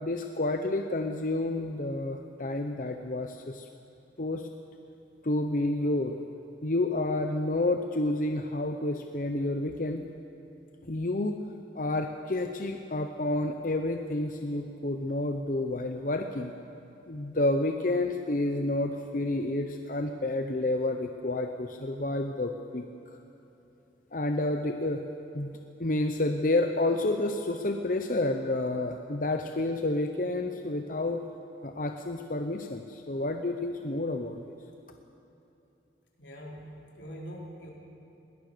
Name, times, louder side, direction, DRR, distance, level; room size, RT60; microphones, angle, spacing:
voice 1, 0.0-3.7 4.2-4.5 5.2-6.2 6.6-10.0 10.8-11.4 11.7-16.5 17.1-22.9 24.1-25.0 25.3-31.2 31.6-34.5, left 2 dB, 45° left, 5 dB, 0.8 m, -30 dB
voice 2, 36.2-37.7, equal, 90° left, -2 dB, 4.3 m, -43 dB
21.5 x 18.0 x 6.8 m, 2.9 s
head